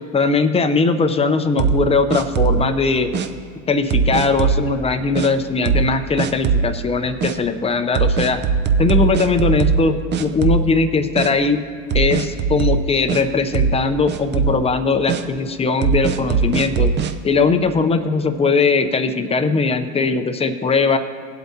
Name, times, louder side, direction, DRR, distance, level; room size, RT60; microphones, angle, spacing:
voice 1, 0.1-3.1 3.7-8.4 8.8-11.6 11.9-16.9 17.2-21.0, left 4 dB, 15° left, 8 dB, 0.6 m, -19 dB
sound 1, 1.6-2.7 3.1-3.3 3.9-4.7 5.2-5.3 5.7-5.9 6.2-6.7 7.2-7.4 8.0-9.9 10.1-10.9 11.2-11.3 11.9-13.2 13.5-13.8 14.1-14.6 15.1-15.2 15.8-17.1, right 6 dB, 30° right, 0.6 m, -19 dB
18.5 x 8.1 x 2.8 m, 2.3 s
supercardioid pair, 115°, 39 cm